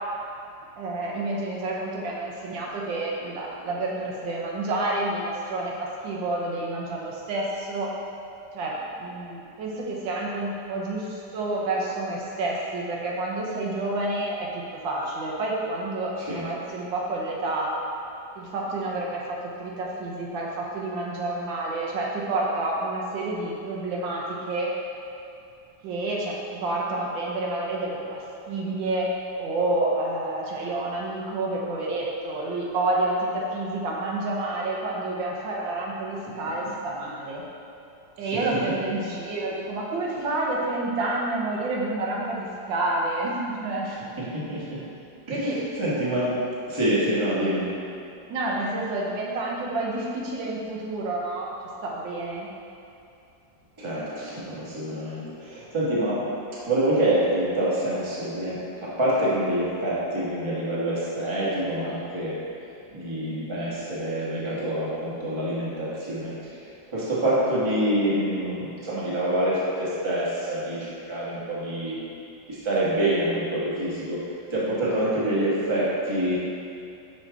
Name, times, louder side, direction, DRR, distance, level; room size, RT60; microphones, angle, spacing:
voice 1, 0.8-7.9 8.5-17.7 18.3-24.7 25.8-29.1 29.4-37.4 38.2-43.9 45.1-45.6 48.3-51.5 51.8-52.5 74.7-74.8, right 2 dB, 85° right, -3 dB, 1.6 m, -29 dB
voice 2, 43.8-44.8 45.3-46.3 46.7-47.7 53.8-56.2 56.7-62.4 62.9-66.6 66.9-72.0 72.5-74.2 74.5-76.3, right 1 dB, 20° right, -9 dB, 1.1 m, -26 dB
5.5 x 5.4 x 3.4 m, 2.6 s
omnidirectional pair, 2.0 m